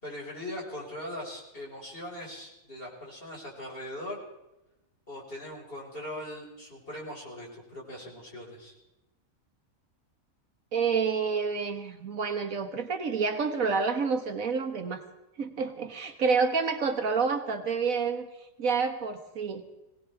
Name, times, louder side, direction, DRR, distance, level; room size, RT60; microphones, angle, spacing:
voice 1, 0.0-4.2 5.1-8.7, left 1 dB, 40° left, -3 dB, 5.3 m, -40 dB
voice 2, 10.7-15.0 15.4-18.3 18.6-19.6, right 5 dB, 75° right, 6 dB, 1.8 m, -28 dB
23.0 x 18.0 x 3.5 m, 0.96 s
omnidirectional pair, 1.5 m